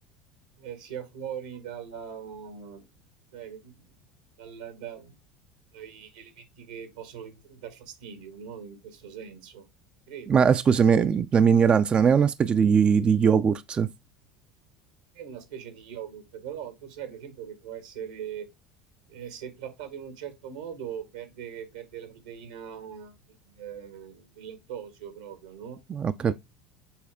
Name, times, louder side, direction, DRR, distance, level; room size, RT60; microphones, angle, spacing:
voice 1, 0.6-2.9 3.3-3.9 4.4-5.2 5.7-9.7 10.1-10.6 15.1-18.5 19.1-25.8 26.3-26.4, right 8 dB, 85° right, 1.9 m, -41 dB
voice 2, 10.3-13.9 25.9-26.3, right 6 dB, 30° right, 0.4 m, -20 dB
7.0 x 4.2 x 3.5 m
hypercardioid pair, 80°, 3 cm